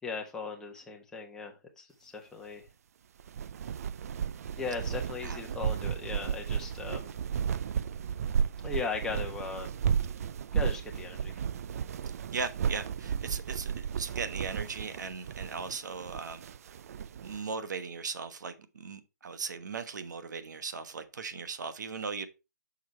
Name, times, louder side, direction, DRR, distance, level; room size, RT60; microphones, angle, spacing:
voice 1, 0.0-2.6 4.6-7.1 8.6-9.7 10.5-11.4, left 4 dB, 5° left, 1.2 m, -38 dB
sound 1, 3.2-17.4, right 7 dB, 50° right, 0.4 m, -34 dB
voice 2, 12.3-16.4 17.2-22.3, right 5 dB, 70° right, 1.2 m, -38 dB
6.5 x 4.8 x 4.4 m
hypercardioid pair, 150°, 10 cm